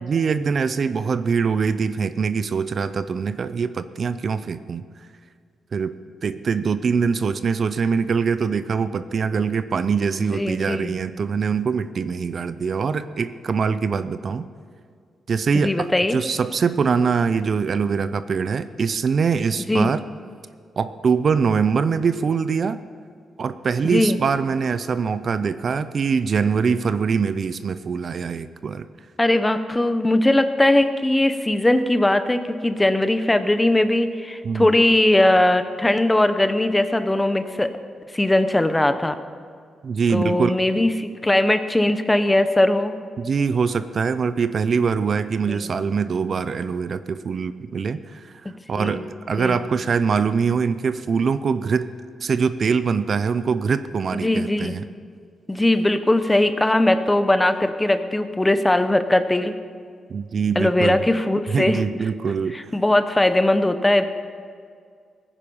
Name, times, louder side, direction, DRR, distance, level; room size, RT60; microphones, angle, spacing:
voice 1, 0.0-4.8 5.7-5.9 6.2-14.5 15.3-20.0 20.8-22.8 23.4-28.9 34.4-34.7 39.8-40.5 43.2-51.9 52.2-54.9 60.1-61.0 61.5-62.7, right 5 dB, 45° right, 13 dB, 0.5 m, -23 dB
voice 2, 10.3-10.9 15.5-16.2 19.7-19.9 23.8-24.2 29.2-37.7 38.1-39.2 40.1-42.9 45.5-45.6 48.4-49.0 49.4-49.6 54.2-54.7 55.5-59.5 60.6-61.8 62.5-64.0, left 1 dB, 10° left, 10 dB, 0.7 m, -20 dB
18.5 x 10.0 x 5.5 m, 2.1 s
cardioid pair, 130°, 0 cm